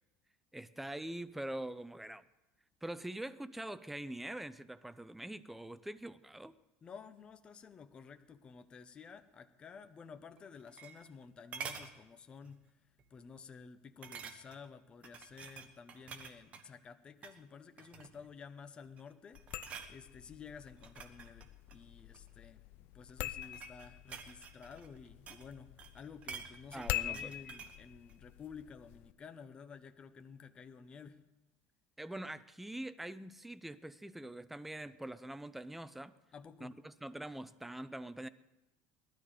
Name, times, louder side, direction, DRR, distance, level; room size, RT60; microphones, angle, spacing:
voice 1, 0.5-2.2 2.8-6.5 26.7-27.3 32.0-36.1 36.6-38.3, right 1 dB, 5° right, 0.5 m, -44 dB
voice 2, 6.8-31.3 36.3-36.8, left 6 dB, 25° left, 0.8 m, -53 dB
sound 1, 10.4-11.2 11.5-11.9 12.4-12.7 13.0-13.1 14.0-14.7 15.0-16.7 17.1-17.4 17.8-18.3 18.8-19.1 19.3-19.9 20.7-22.3 23.1-25.5 25.8-27.8 28.1-28.2, right 6 dB, 35° right, 1.1 m, -48 dB
sound 2, 19.3-29.1, left 15 dB, 55° left, 0.5 m, -45 dB
18.0 x 12.5 x 5.0 m
cardioid pair, 145°, 4 cm